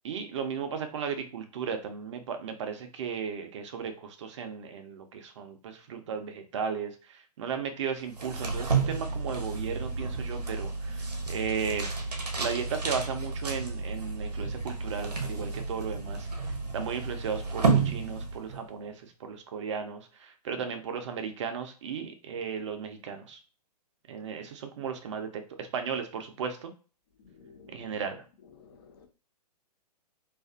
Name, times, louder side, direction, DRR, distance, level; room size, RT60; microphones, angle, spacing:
voice 1, 0.0-11.9 12.4-16.3 16.7-23.4 24.1-26.7 27.7-28.2, right 6 dB, 45° right, 0.5 m, -35 dB
sound 1, 8.1-18.7, right 4 dB, 70° right, 0.8 m, -31 dB
voice 2, 27.2-27.9 28.5-29.1, left 5 dB, 35° left, 0.4 m, -54 dB
2.4 x 2.3 x 2.3 m
figure-of-eight pair, 120°, 21 cm